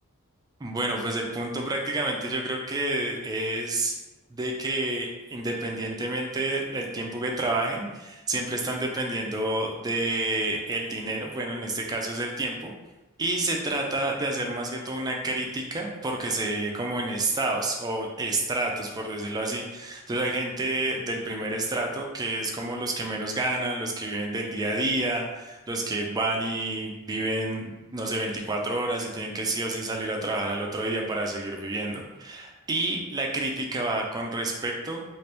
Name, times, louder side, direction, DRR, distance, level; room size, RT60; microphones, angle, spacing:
voice 1, 0.6-3.9 4.3-12.7 13.2-35.0, right 2 dB, 20° right, 1 dB, 0.4 m, -29 dB
2.8 x 2.5 x 3.3 m, 1.1 s
head